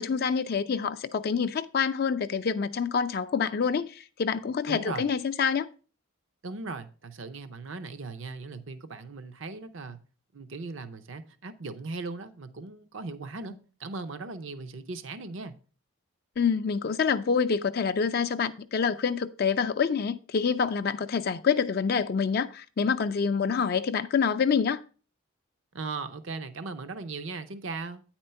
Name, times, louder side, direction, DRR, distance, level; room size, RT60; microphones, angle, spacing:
voice 1, 0.0-5.7 16.4-24.8, left 6 dB, 45° left, 0.3 m, -27 dB
voice 2, 4.7-5.1 6.4-10.0 10.3-15.6 25.7-28.0, right 3 dB, 65° right, 0.6 m, -38 dB
9.4 x 4.4 x 5.5 m
head